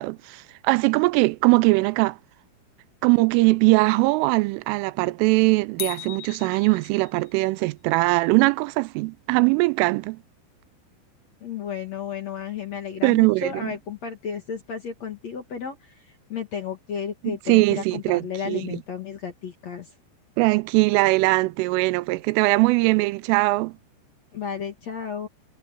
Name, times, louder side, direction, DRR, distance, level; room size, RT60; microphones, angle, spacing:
voice 1, 0.0-2.2 3.0-10.2 13.0-13.7 17.2-18.8 20.4-23.8, right 24 dB, 85° right, 3.1 m, -21 dB
sound 1, 5.8-7.4, left 16 dB, 75° left, 2.4 m, -37 dB
voice 2, 11.4-19.9 24.3-25.3, left 7 dB, 50° left, 2.3 m, -33 dB
omnidirectional pair, 5.7 m